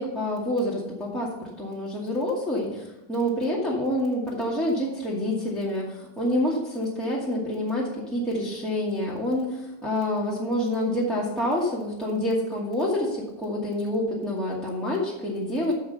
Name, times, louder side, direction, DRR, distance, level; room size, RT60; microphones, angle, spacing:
voice 1, 0.0-15.7, left 1 dB, ahead, -5 dB, 1.2 m, -27 dB
14.0 x 5.0 x 5.5 m, 0.97 s
omnidirectional pair, 3.9 m